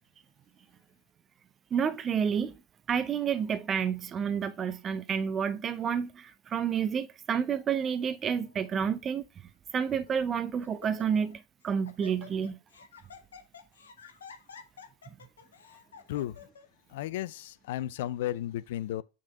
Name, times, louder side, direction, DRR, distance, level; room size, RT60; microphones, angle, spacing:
voice 1, 1.7-2.6 2.9-9.3 9.7-12.6 15.1-15.2, right 7 dB, 30° right, 0.6 m, -30 dB
Laughter, 8.3-8.7 9.5-9.6 10.1-10.3 10.6-11.4 11.6-16.7, left 6 dB, 85° left, 1.0 m, -50 dB
voice 2, 16.9-19.0, left 13 dB, 70° left, 0.5 m, -34 dB
6.3 x 3.9 x 5.4 m
hypercardioid pair, 90°, 0 cm